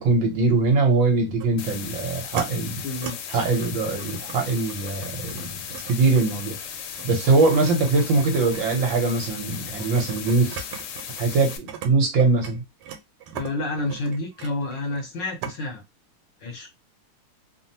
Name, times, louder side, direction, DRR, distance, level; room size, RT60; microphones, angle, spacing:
voice 1, 0.0-2.8 3.3-5.6 5.9-6.6 7.0-10.6 11.2-12.6, right 3 dB, 65° right, 1.4 m, -22 dB
sound 1, 1.4-1.5 2.0-2.5 2.9-3.1 3.5-11.9 12.2-15.1 15.4-15.6, right 8 dB, 85° right, 1.5 m, -39 dB
sound 2, 1.6-11.6, left 8 dB, 80° left, 1.5 m, -36 dB
voice 2, 2.8-3.5 3.8-3.9 7.2-7.3 13.3-15.8 16.4-16.7, left 2 dB, 65° left, 1.3 m, -30 dB
3.5 x 2.0 x 2.6 m
omnidirectional pair, 2.4 m